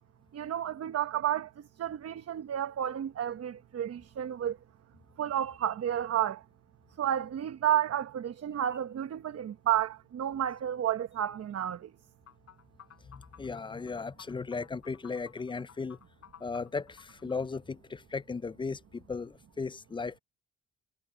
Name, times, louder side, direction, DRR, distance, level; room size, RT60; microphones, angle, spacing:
voice 1, 0.3-4.6 5.2-6.4 7.0-11.9, right 11 dB, 55° right, 1.1 m, -31 dB
sound 1, 12.3-17.4, left 9 dB, 55° left, 4.9 m, -55 dB
voice 2, 13.0-16.0 16.4-20.2, left 4 dB, 15° left, 0.3 m, -36 dB
cardioid pair, 90°, 30 cm